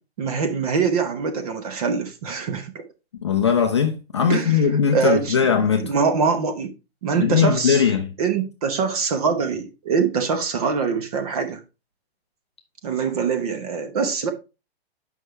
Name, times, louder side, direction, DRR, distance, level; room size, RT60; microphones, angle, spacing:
voice 1, 0.2-2.8 4.3-4.6 4.9-6.7 7.0-7.8 8.2-11.6 12.8-14.3, right 5 dB, 35° right, 1.1 m, -24 dB
voice 2, 3.2-5.9 7.2-8.1, left 7 dB, 30° left, 0.4 m, -20 dB
7.9 x 5.5 x 3.2 m
hypercardioid pair, 175°, 31 cm